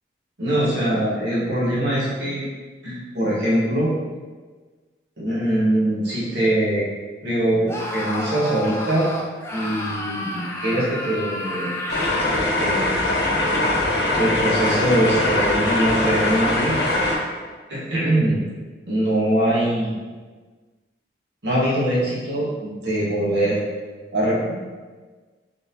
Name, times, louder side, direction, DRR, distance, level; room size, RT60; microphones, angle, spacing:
voice 1, 0.4-2.5 2.8-3.9 5.2-6.9 7.2-9.1 9.5-11.7 12.5-12.9 14.1-16.7 17.7-18.4 18.9-20.0 21.4-23.6 24.1-24.5, right 1 dB, 80° right, -7 dB, 1.3 m, -22 dB
Screaming, 7.7-12.5, left 1 dB, 15° left, 0.3 m, -31 dB
sound 1, 11.9-17.1, left 2 dB, 70° left, 0.8 m, -21 dB
3.8 x 3.5 x 2.7 m, 1.4 s
head